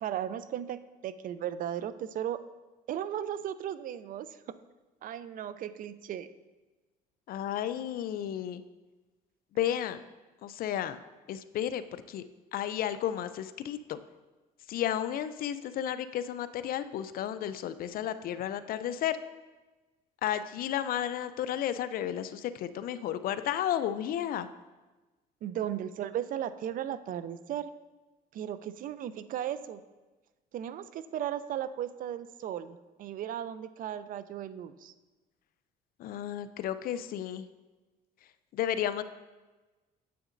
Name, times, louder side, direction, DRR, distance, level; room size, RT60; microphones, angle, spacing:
voice 1, 0.0-2.4 2.9-4.3 5.0-6.3 25.4-27.7 28.3-29.8 30.5-34.9, right 10 dB, 55° right, 13 dB, 0.4 m, -36 dB
voice 2, 7.3-8.6 9.5-10.0 10.4-11.0 11.3-12.2 12.5-14.0 14.7-19.2 20.2-24.5 36.0-37.5 38.5-39.0, left 10 dB, 60° left, 12 dB, 0.4 m, -32 dB
9.2 x 7.4 x 2.6 m, 1.2 s
cardioid pair, 110°, 17 cm